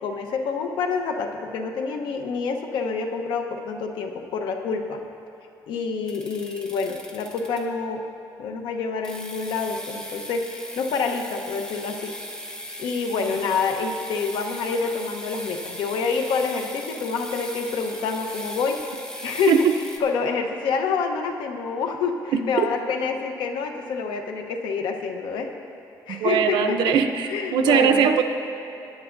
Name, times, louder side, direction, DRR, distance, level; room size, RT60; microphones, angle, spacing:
voice 1, 0.0-5.0 5.7-8.0 8.4-12.1 12.8-18.8 19.2-19.5 20.0-25.5 26.1-26.9 27.2-28.1, left 5 dB, 85° left, 4 dB, 1.0 m, -27 dB
sound 1, 6.1-7.8 9.0-20.0, left 1 dB, 10° left, 1.1 m, -38 dB
voice 2, 22.3-22.7 26.1-28.2, right 7 dB, 80° right, 7 dB, 0.7 m, -21 dB
18.5 x 10.0 x 2.6 m, 2.9 s
cardioid pair, 120°, 8 cm